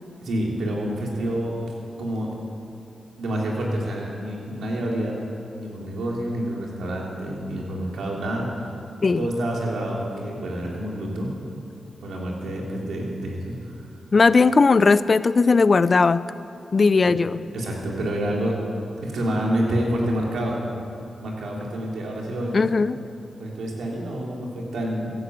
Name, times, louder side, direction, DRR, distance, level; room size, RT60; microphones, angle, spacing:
voice 1, 0.2-1.5 2.0-2.3 3.2-8.8 9.2-11.3 12.0-13.8 17.1-17.2 17.5-18.6 19.0-20.6 21.2-22.7 23.4-25.1, right 1 dB, 80° right, -2 dB, 3.6 m, -28 dB
voice 2, 14.1-16.3 16.7-17.4 22.5-23.0, left 4 dB, 50° left, 16 dB, 0.5 m, -18 dB
15.5 x 11.0 x 8.2 m, 2.6 s
cardioid pair, 55°, 0 cm